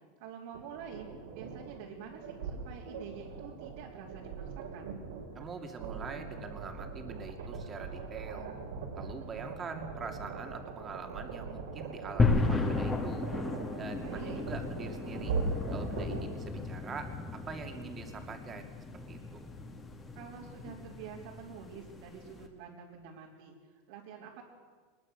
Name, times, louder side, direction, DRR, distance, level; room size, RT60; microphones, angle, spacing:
voice 1, 0.2-5.0 14.0-14.4 20.1-24.4, right 7 dB, 65° right, -4 dB, 3.4 m, -47 dB
sound 1, 0.5-16.2, right 4 dB, 90° right, 4.8 m, -41 dB
voice 2, 5.3-8.5 9.0-13.3 13.8-15.3 15.7-18.7 19.1-19.5, right 5 dB, 20° right, 4 dB, 2.3 m, -44 dB
sound 2, 12.2-22.5, left 3 dB, 15° left, 2.2 m, -34 dB
23.0 x 20.5 x 6.5 m, 1.5 s
supercardioid pair, 160°, 0 cm